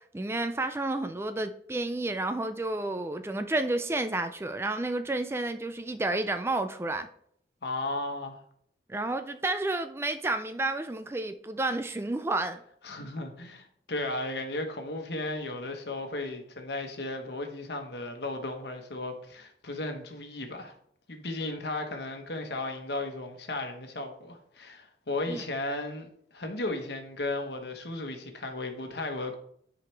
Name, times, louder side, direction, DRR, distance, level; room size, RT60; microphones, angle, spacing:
voice 1, 0.0-7.1 8.9-12.6 25.3-25.4, right 2 dB, 15° right, 0.3 m, -31 dB
voice 2, 7.6-8.4 12.8-20.7 21.1-29.4, left 2 dB, 70° left, 1.2 m, -35 dB
11.0 x 4.9 x 3.3 m
head